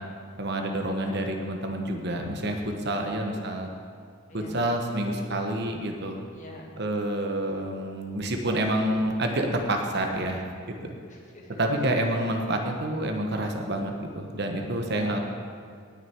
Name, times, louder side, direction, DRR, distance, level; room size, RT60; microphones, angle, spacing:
voice 1, 0.4-3.7 4.3-6.2 6.8-10.8 11.6-15.2, right 1 dB, 50° right, 3 dB, 1.2 m, -28 dB
voice 2, 2.9-3.3 4.3-4.6 6.3-7.4 11.1-11.6 14.8-15.2, left 1 dB, 35° left, 0 dB, 1.6 m, -45 dB
18.5 x 6.5 x 4.6 m, 2.2 s
head